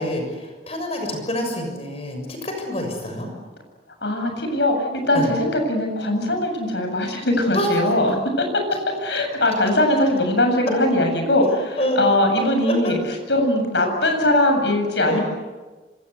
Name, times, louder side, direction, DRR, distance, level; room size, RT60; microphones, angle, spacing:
voice 1, 0.0-3.3 5.1-5.3 7.5-7.7 11.8-12.2 15.1-15.2, left 1 dB, 35° left, 4 dB, 6.7 m, -27 dB
voice 2, 4.0-8.5 9.0-13.0 13.3-15.2, left 1 dB, 80° left, 4 dB, 7.9 m, -20 dB
26.5 x 26.5 x 8.4 m, 1.2 s
head